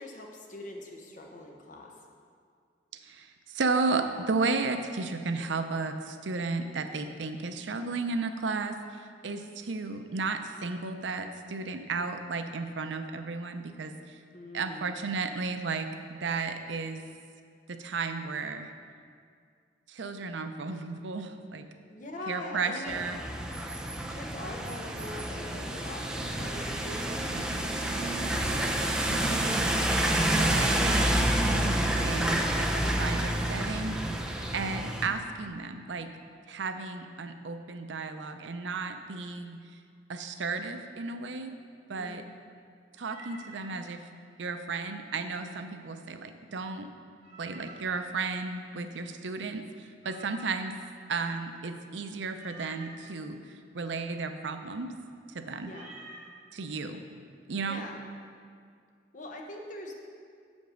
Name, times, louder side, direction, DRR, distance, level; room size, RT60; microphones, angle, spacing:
voice 1, 0.0-1.9 9.3-9.5 14.3-14.9 21.9-23.0 24.1-29.1 42.0-42.2 55.6-55.9 57.6-58.0 59.1-59.9, left 1 dB, 45° left, 1 dB, 1.0 m, -43 dB
voice 2, 3.0-8.8 9.2-14.2 14.5-17.0 17.7-18.7 19.9-21.7 22.3-23.2 27.3-27.6 29.0-29.4 30.3-31.1 31.3-34.0 34.5-36.1 36.5-39.6 40.1-41.5 41.9-42.2 43.0-44.0 44.4-46.9 47.4-50.7 51.1-53.4 53.7-54.9 55.3-55.7 56.5-57.0 57.5-57.8, right 4 dB, 85° right, 8 dB, 0.6 m, -34 dB
sound 1, 22.9-35.1, right 1 dB, 5° right, 0.5 m, -28 dB
Meow, 43.0-43.8 47.2-48.0 50.0-50.8 52.3-53.0 55.6-56.3, right 2 dB, 35° right, 1.7 m, -49 dB
7.8 x 5.3 x 6.3 m, 2.2 s
head